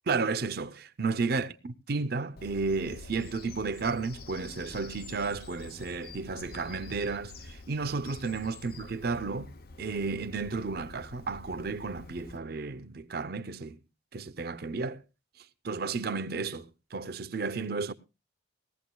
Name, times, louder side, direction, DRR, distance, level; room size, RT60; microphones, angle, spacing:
voice 1, 0.1-9.5 9.8-13.8 14.1-15.0 15.6-17.9, right 4 dB, 50° right, 0.6 m, -33 dB
Bird vocalization bird call bird song, 2.4-12.4, left 3 dB, 50° left, 0.6 m, -47 dB
19.5 x 15.0 x 2.2 m
head